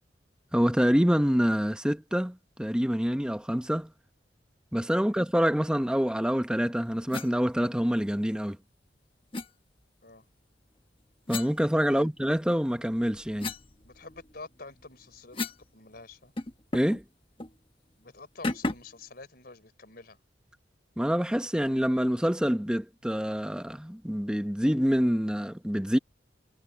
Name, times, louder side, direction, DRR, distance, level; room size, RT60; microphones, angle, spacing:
voice 1, 0.5-3.9 4.7-8.6 11.3-13.5 16.7-17.0 21.0-26.0, equal, 5° right, 1.0 m, -26 dB
sound 1, 7.1-7.3 9.3-9.5 11.3-12.3 12.8-15.7 16.0-16.1 16.4-17.0 17.4-17.6 18.4-19.0, left 2 dB, 30° left, 1.2 m, -36 dB
voice 2, 13.8-16.3 18.0-20.2, left 3 dB, 55° left, 4.4 m, -48 dB
head